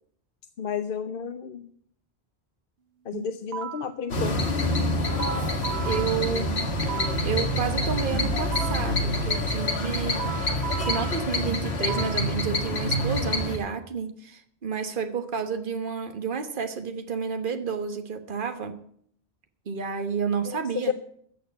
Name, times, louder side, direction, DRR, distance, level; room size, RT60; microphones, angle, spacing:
voice 1, 0.6-1.7 3.1-4.4 20.5-20.9, left 7 dB, 60° left, 10 dB, 0.9 m, -31 dB
sound 1, 3.1-4.0 4.8-7.3 8.1-9.0 9.8-12.3, right 8 dB, 70° right, 1.1 m, -36 dB
sound 2, 4.1-13.6, left 1 dB, 80° left, 2.0 m, -27 dB
voice 2, 5.8-6.5 7.2-10.2 10.9-18.8 19.7-20.9, right 6 dB, 55° right, 8 dB, 1.4 m, -30 dB
14.5 x 6.5 x 8.7 m, 0.65 s
omnidirectional pair, 1.1 m